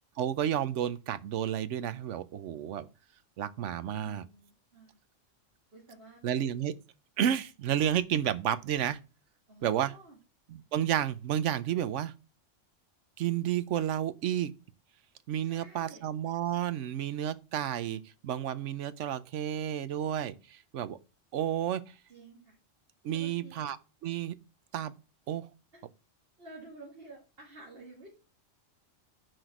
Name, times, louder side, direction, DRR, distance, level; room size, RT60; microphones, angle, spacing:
voice 1, 0.2-2.9 3.4-4.2 6.2-6.7 7.2-9.0 9.6-9.9 10.5-12.1 13.2-14.5 15.3-21.0 21.3-21.9 23.0-23.8 24.0-24.3 24.7-24.9 25.3-25.5, right 10 dB, 75° right, 1.0 m, -31 dB
voice 2, 4.0-5.0 5.7-6.2 9.5-10.2 15.4-16.1 22.1-22.6 23.1-23.7 25.7-25.8 26.4-28.1, right 2 dB, 50° right, 2.2 m, -51 dB
5.9 x 5.1 x 6.0 m
omnidirectional pair, 1.3 m